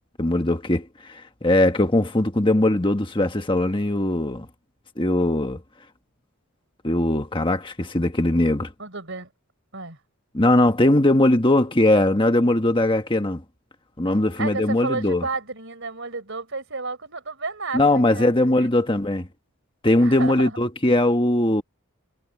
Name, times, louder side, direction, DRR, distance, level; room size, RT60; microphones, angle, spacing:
voice 1, 0.2-4.5 5.0-5.6 6.8-8.7 10.3-13.4 14.0-15.2 17.7-19.3 19.8-21.6, left 1 dB, 20° left, 1.5 m, -20 dB
voice 2, 8.8-9.3 9.7-10.0 14.4-18.7 20.0-20.6, right 3 dB, 55° right, 4.3 m, -32 dB
head